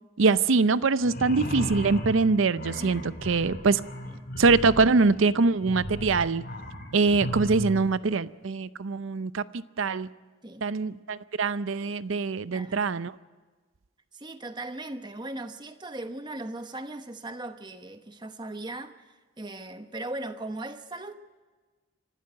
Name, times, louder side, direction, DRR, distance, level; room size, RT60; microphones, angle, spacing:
voice 1, 0.2-3.8 4.4-6.4 6.9-10.1 10.6-13.1, right 4 dB, 70° right, 0.6 m, -23 dB
sound 1, 1.0-7.8, equal, 50° left, 3.0 m, -36 dB
voice 2, 12.5-12.9 14.1-21.1, right 2 dB, 20° right, 0.9 m, -38 dB
25.0 x 12.5 x 9.5 m
head